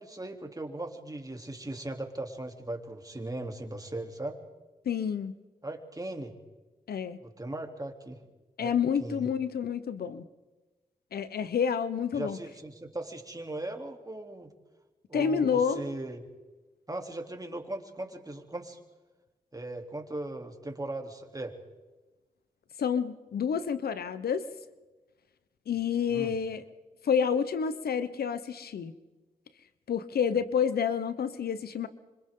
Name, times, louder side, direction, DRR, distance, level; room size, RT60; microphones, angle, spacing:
voice 1, 0.0-4.4 5.6-6.3 7.2-8.2 8.6-8.7 9.0-9.3 12.1-14.5 15.1-16.2 16.9-18.8 19.5-21.5 26.1-26.3, right 2 dB, 25° right, 3 dB, 3.3 m, -38 dB
voice 2, 4.8-5.4 6.9-7.2 8.6-10.3 11.1-12.4 15.1-15.8 22.8-24.5 25.7-26.6 27.0-28.9 29.9-31.9, left 7 dB, 80° left, 13 dB, 1.0 m, -29 dB
26.5 x 26.0 x 3.8 m, 1.2 s
cardioid pair, 45°, 16 cm